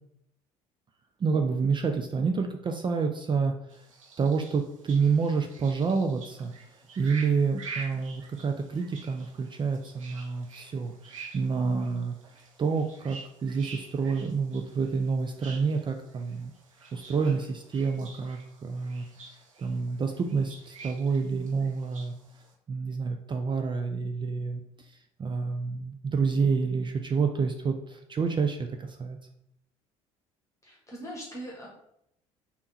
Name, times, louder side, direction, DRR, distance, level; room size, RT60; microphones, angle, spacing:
voice 1, 1.2-3.5 4.2-6.5 7.0-12.1 12.6-16.5 16.9-19.1 19.6-22.1 22.7-24.6 24.9-29.2, right 5 dB, 30° right, 5 dB, 0.5 m, -28 dB
sound 1, 3.7-22.5, right 4 dB, 90° right, 0.6 m, -48 dB
voice 2, 30.6-31.7, right 1 dB, 20° left, -2 dB, 1.3 m, -41 dB
3.5 x 2.9 x 4.1 m, 0.76 s
hypercardioid pair, 60°, 16 cm